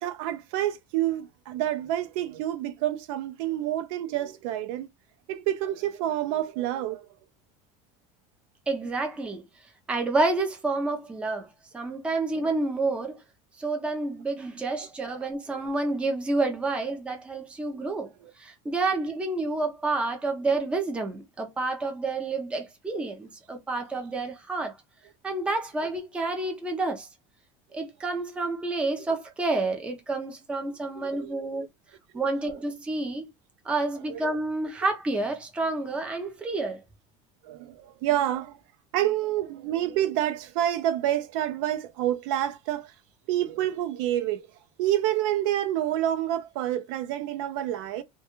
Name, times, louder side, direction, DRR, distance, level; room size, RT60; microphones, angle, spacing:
voice 1, 0.0-4.9 5.3-7.1 15.5-15.6 18.2-18.3 31.0-31.7 34.1-34.3 37.4-38.6 38.9-42.9 43.3-44.4 44.8-48.0, right 12 dB, 60° right, 0.4 m, -28 dB
voice 2, 8.7-9.4 9.9-13.2 13.6-18.1 18.4-24.7 25.2-27.1 27.7-31.7 32.1-33.3 33.6-36.8, right 3 dB, 5° right, 0.4 m, -29 dB
2.3 x 2.2 x 2.9 m
cardioid pair, 165°, 18 cm